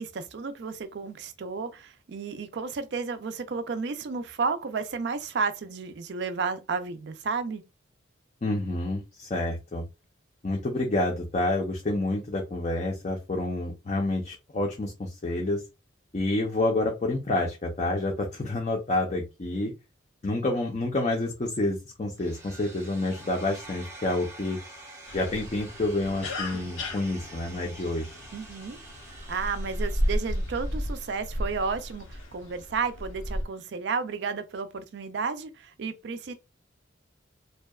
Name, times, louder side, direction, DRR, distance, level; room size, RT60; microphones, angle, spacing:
voice 1, 0.0-7.6 28.3-28.8 29.3-36.3, right 5 dB, 60° right, 0.4 m, -32 dB
voice 2, 8.4-9.8 10.4-15.6 16.1-19.7 20.2-24.6 25.1-28.2, left 2 dB, 35° left, 0.4 m, -28 dB
sound 1, 22.2-32.2, right 2 dB, 15° right, 0.6 m, -47 dB
sound 2, 25.1-33.4, equal, 90° left, 0.6 m, -34 dB
2.6 x 2.2 x 2.3 m
head